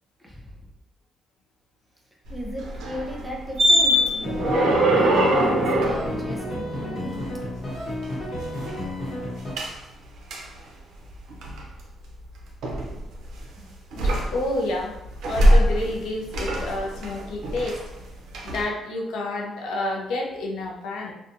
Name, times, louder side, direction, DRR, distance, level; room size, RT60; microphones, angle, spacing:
voice 1, 2.3-4.0 4.9-7.2, equal, 5° right, -2 dB, 0.6 m, -35 dB
sound 1, 2.3-7.3 7.7-8.8 9.6-9.7 10.3-10.4 11.1-11.6 12.6-13.4 13.9-14.7 15.0-16.1 16.3-18.0 18.3-18.6, equal, 75° right, 0.5 m, -22 dB
sound 2, 4.2-9.5, left 1 dB, 50° left, 0.9 m, -32 dB
voice 2, 13.9-15.0 15.3-17.8 18.4-21.1, left 2 dB, 90° left, 0 dB, 0.4 m, -29 dB
2.6 x 2.1 x 2.6 m, 0.91 s
cardioid pair, 90°, 0 cm